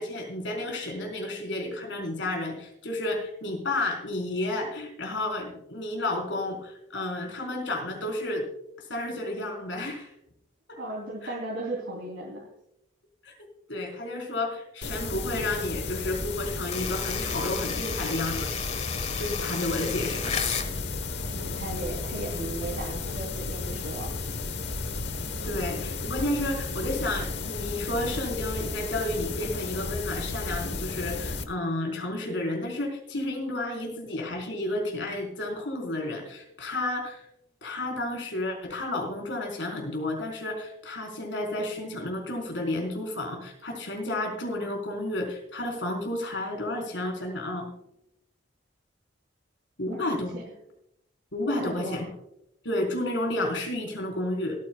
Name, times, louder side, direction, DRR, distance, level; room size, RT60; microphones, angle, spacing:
voice 1, 0.0-8.4 8.9-10.1 10.7-10.8 11.2-11.3 13.2-13.3 13.7-18.5 19.2-20.5 25.4-37.3 37.6-47.7 49.8-50.3 51.3-52.1 52.6-54.6, left 1 dB, 80° left, 1 dB, 4.3 m, -31 dB
voice 2, 10.7-12.4 21.3-24.2 49.8-50.4 51.5-52.1, right 1 dB, 80° right, -3 dB, 3.2 m, -36 dB
sound 1, 14.8-31.4, left 3 dB, 65° left, 1.1 m, -33 dB
sound 2, 16.7-20.7, left 6 dB, 35° left, 1.3 m, -33 dB
26.5 x 9.5 x 2.3 m, 0.80 s
head